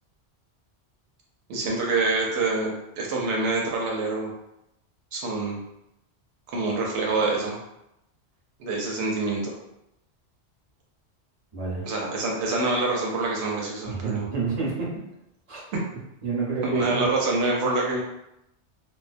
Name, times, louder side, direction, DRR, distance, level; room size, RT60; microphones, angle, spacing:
voice 1, 1.5-4.3 5.1-5.6 6.5-7.6 8.6-9.5 11.8-14.3 15.7-15.8 16.6-18.0, right 3 dB, 85° right, -2 dB, 0.9 m, -26 dB
voice 2, 11.5-11.9 13.8-14.9 15.5-15.6 16.2-17.1, right 4 dB, 35° right, -6 dB, 0.8 m, -28 dB
2.3 x 2.1 x 2.5 m, 0.86 s
omnidirectional pair, 1.1 m